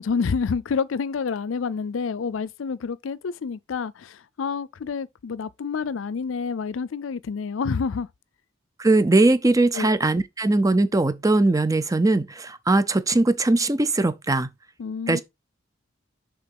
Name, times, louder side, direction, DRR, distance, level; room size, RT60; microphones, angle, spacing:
voice 1, 0.0-8.1 9.7-9.9 14.8-15.2, left 5 dB, 85° left, 0.5 m, -28 dB
voice 2, 8.8-14.5 15.1-15.2, right 2 dB, 20° right, 0.5 m, -20 dB
6.8 x 3.5 x 5.2 m
head